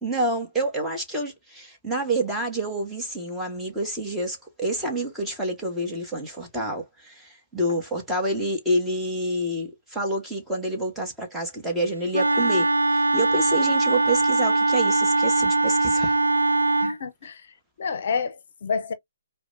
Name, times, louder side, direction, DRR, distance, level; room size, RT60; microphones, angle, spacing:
voice 1, 0.0-16.1, right 1 dB, 5° right, 1.2 m, -28 dB
Wind instrument woodwind instrument, 12.1-17.0, right 2 dB, 85° right, 0.5 m, -21 dB
voice 2, 16.8-18.9, left 5 dB, 50° left, 0.7 m, -30 dB
4.8 x 2.2 x 2.5 m
figure-of-eight pair, 135°, 0 cm